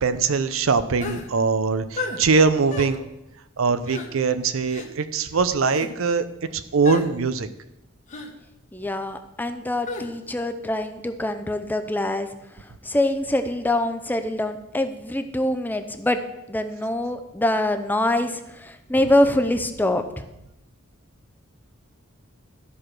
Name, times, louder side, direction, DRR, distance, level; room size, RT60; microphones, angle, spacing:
voice 1, 0.0-3.0 3.6-6.2 6.5-7.5, right 4 dB, 75° right, 12 dB, 0.6 m, -22 dB
sound 1, 1.0-1.3 2.0-2.2 2.7-2.9 3.9-4.1 4.7-4.9 5.6-5.9 6.8-7.1 8.1-8.3 9.9-10.1, left 3 dB, 35° left, 1.1 m, -32 dB
voice 2, 8.7-12.3 12.6-16.2 16.5-20.2, left 1 dB, 10° left, 7 dB, 0.6 m, -24 dB
12.5 x 4.9 x 6.0 m, 0.91 s
head